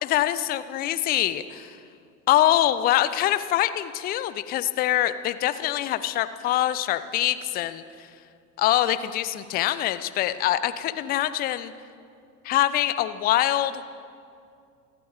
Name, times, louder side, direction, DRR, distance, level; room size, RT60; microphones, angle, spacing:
voice 1, 0.0-1.8 2.3-7.8 8.6-11.7 12.5-13.8, left 13 dB, 20° left, 13 dB, 0.4 m, -24 dB
26.0 x 11.5 x 3.6 m, 2.4 s
figure-of-eight pair, 80°, 48 cm